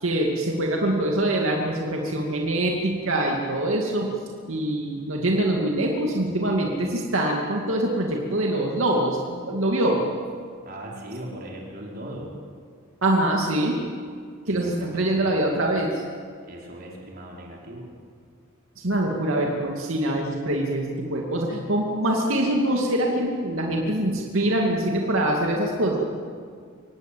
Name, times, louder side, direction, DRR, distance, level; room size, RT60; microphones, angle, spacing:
voice 1, 0.0-4.1 4.5-10.0 13.0-13.8 14.5-16.0 18.8-26.0, right 1 dB, 80° right, 0 dB, 2.5 m, -24 dB
voice 2, 10.6-12.3 14.5-15.3 16.4-17.9, right 1 dB, 45° right, -2 dB, 4.9 m, -39 dB
25.0 x 18.0 x 8.7 m, 2.1 s
head